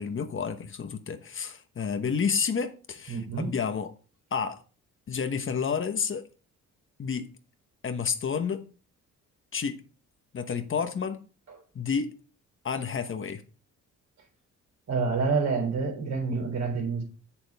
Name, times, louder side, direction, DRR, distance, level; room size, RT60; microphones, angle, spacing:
voice 1, 0.0-3.9 4.3-4.6 5.1-6.3 7.0-7.3 7.8-8.6 9.5-9.8 10.3-11.2 11.7-12.1 12.6-13.4, left 6 dB, 45° left, 1.1 m, -30 dB
voice 2, 3.1-3.5 14.9-17.0, right 4 dB, 60° right, 3.7 m, -28 dB
7.6 x 7.1 x 3.5 m
cardioid pair, 90°, 30 cm